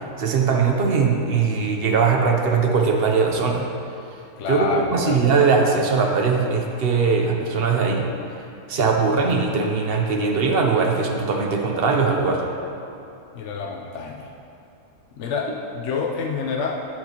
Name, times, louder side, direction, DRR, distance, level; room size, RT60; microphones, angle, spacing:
voice 1, 0.2-3.6 4.5-8.1 8.7-12.4, right 5 dB, 55° right, 2 dB, 0.8 m, -20 dB
voice 2, 4.4-5.2 13.3-14.3 15.2-16.7, left 5 dB, 65° left, 0 dB, 0.9 m, -28 dB
12.0 x 6.0 x 2.9 m, 2.7 s
omnidirectional pair, 1.4 m